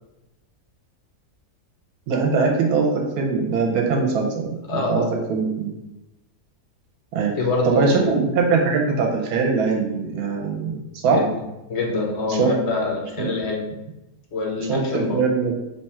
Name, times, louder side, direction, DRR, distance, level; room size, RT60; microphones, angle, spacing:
voice 1, 2.1-5.7 7.1-7.3 7.6-11.2 12.3-12.5 13.2-13.3 14.7-15.5, right 4 dB, 75° right, 1 dB, 1.1 m, -22 dB
voice 2, 4.7-5.1 7.4-8.1 11.1-11.3 11.7-13.7 14.3-15.2, left 3 dB, 60° left, -1 dB, 0.8 m, -25 dB
3.0 x 2.3 x 4.2 m, 0.93 s
omnidirectional pair, 1.7 m